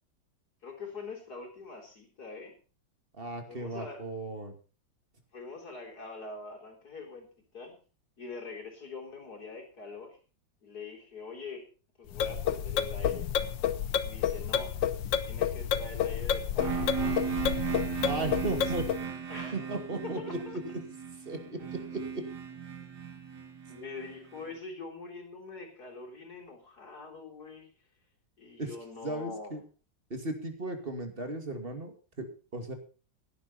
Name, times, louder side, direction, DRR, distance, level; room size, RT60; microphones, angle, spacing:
voice 1, 0.6-2.6 3.5-4.0 5.3-7.3 7.5-7.8 8.2-10.2 10.6-11.7 12.0-13.3 14.0-14.8 15.2-17.4 19.3-19.6 19.9-20.6 23.7-27.7 28.4-29.5, left 4 dB, 55° left, 1 dB, 4.3 m, -44 dB
voice 2, 3.2-4.5 18.0-18.9 19.5-20.4 21.3-22.2 28.6-28.7 29.0-29.6 30.1-32.7, right 2 dB, 30° right, 6 dB, 2.5 m, -36 dB
sound 1, 12.1-19.0, left 9 dB, 80° left, 1.6 m, -30 dB
sound 2, 16.6-24.4, right 7 dB, 60° right, 2.6 m, -36 dB
17.0 x 10.5 x 4.3 m, 0.36 s
omnidirectional pair, 2.0 m